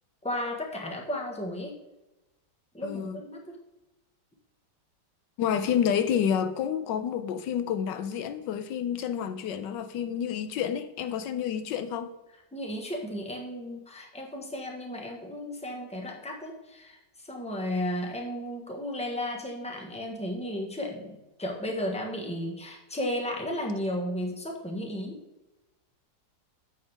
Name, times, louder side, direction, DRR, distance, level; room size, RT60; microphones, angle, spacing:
voice 1, 0.2-1.7 2.7-3.6 12.5-25.2, left 1 dB, 5° left, 1.2 m, -34 dB
voice 2, 2.8-3.2 5.4-12.1, left 8 dB, 85° left, 1.3 m, -29 dB
9.0 x 7.2 x 3.5 m
omnidirectional pair, 1.9 m